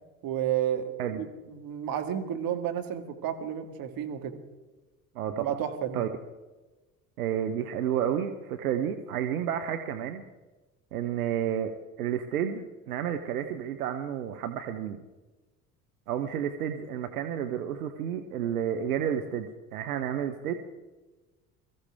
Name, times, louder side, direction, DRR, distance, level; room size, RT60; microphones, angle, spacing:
voice 1, 0.2-4.4 5.4-6.0, right 10 dB, 50° right, 6 dB, 2.0 m, -31 dB
voice 2, 5.1-5.5 5.9-6.1 7.2-10.2 10.9-15.0 16.1-20.5, right 9 dB, 80° right, 7 dB, 0.9 m, -31 dB
22.5 x 15.0 x 3.5 m, 1.2 s
hypercardioid pair, 65°, 43 cm